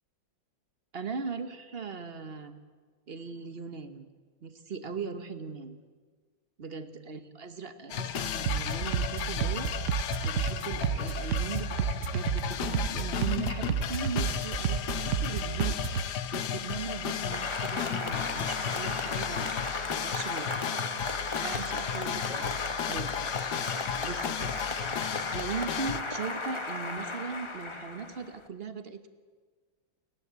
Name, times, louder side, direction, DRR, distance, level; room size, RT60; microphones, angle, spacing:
voice 1, 0.9-2.5 3.1-4.1 4.4-5.8 6.6-19.6 19.9-20.5 21.4-22.6 22.9-23.1 23.7-24.5 25.3-29.1, right 5 dB, 40° right, 9 dB, 1.1 m, -39 dB
sound 1, 7.9-26.0, left 9 dB, 65° left, 1.3 m, -34 dB
sound 2, 8.4-16.1, right 8 dB, 70° right, 0.7 m, -31 dB
Applause, 16.9-28.4, left 2 dB, 20° left, 0.8 m, -35 dB
29.5 x 11.0 x 8.1 m, 1.5 s
omnidirectional pair, 2.1 m